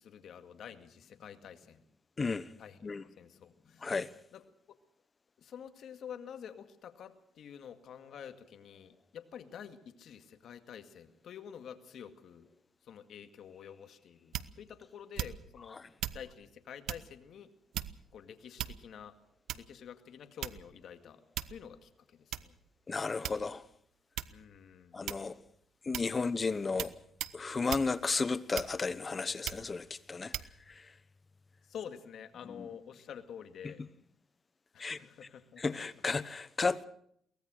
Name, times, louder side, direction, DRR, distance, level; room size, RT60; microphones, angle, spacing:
voice 1, 0.0-1.8 2.6-2.8 3.2-3.9 4.3-4.4 5.4-12.5 12.8-15.8 16.1-17.5 18.1-19.1 19.5-21.2 21.5-22.6 24.3-25.2 26.1-26.3 31.7-33.8 34.7-35.8, left 8 dB, 65° left, 2.1 m, -49 dB
voice 2, 2.2-2.5 2.8-3.0 3.8-4.1 15.7-15.9 22.9-23.6 24.9-25.3 25.8-26.9 27.3-30.3 30.7-30.9 32.6-32.7 33.6-33.7 34.8-35.0 35.6-36.9, left 4 dB, 30° left, 1.0 m, -33 dB
sound 1, 14.3-14.7 15.2-15.6 16.0-16.2 16.9-17.1 17.7-18.1 18.6-19.0 19.5-19.8 20.4-20.8 21.4-21.7 22.3-22.5 23.2-23.7 24.2-24.4 25.1-25.4 25.9-26.2 26.8-26.9 27.2-27.4 27.7-27.9 28.5-28.9 29.4-29.7 30.3-30.5, right 12 dB, 80° right, 0.9 m, -38 dB
23.0 x 18.5 x 6.4 m
cardioid pair, 90°, 0 cm